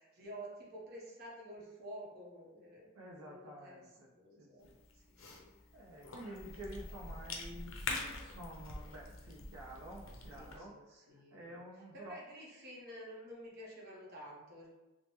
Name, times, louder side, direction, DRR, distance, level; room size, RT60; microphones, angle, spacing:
voice 1, 0.0-2.9 3.2-3.8 4.1-4.7 4.9-5.5 10.3-11.6 11.9-14.7, right 1 dB, 50° right, -4 dB, 0.8 m, -50 dB
voice 2, 2.9-4.1 4.4-4.8 5.7-12.2, right 1 dB, 75° right, -3 dB, 0.4 m, -50 dB
Cough / Chewing mastication, 4.6-10.6, left 3 dB, 65° left, 0.5 m, -45 dB
3.1 x 2.0 x 2.9 m, 1.1 s
head